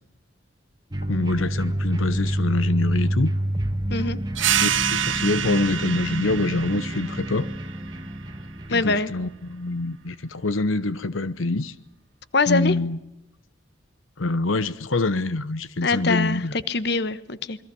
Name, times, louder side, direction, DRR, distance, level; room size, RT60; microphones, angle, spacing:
sound 1, 0.9-9.2, right 1 dB, 20° right, 1.4 m, -28 dB
voice 1, 1.1-3.3 4.6-7.5 8.7-11.7 12.5-13.0 14.2-16.5, left 2 dB, 90° left, 15 dB, 0.9 m, -25 dB
sound 2, 4.4-9.5, right 9 dB, 75° right, 1.5 m, -28 dB
voice 2, 8.7-9.1 12.3-12.7 15.8-17.6, left 3 dB, 55° left, 14 dB, 1.2 m, -23 dB
28.0 x 22.5 x 7.0 m, 0.80 s
head